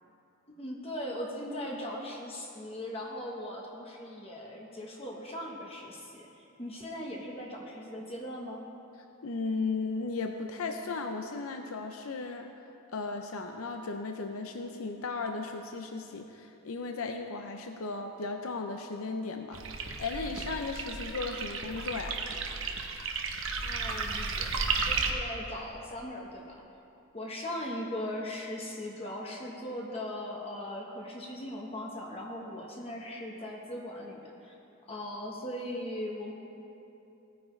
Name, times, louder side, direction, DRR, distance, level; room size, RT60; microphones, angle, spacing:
voice 1, 0.5-8.6 23.6-24.5 24.8-26.6 27.1-34.5 34.9-36.3, left 1 dB, 25° left, -2 dB, 1.1 m, -39 dB
voice 2, 9.2-12.5 12.9-22.2, left 4 dB, 85° left, 4 dB, 0.6 m, -36 dB
sound 1, 19.5-25.1, right 4 dB, 65° right, 0.9 m, -33 dB
18.0 x 9.4 x 3.3 m, 2.8 s
head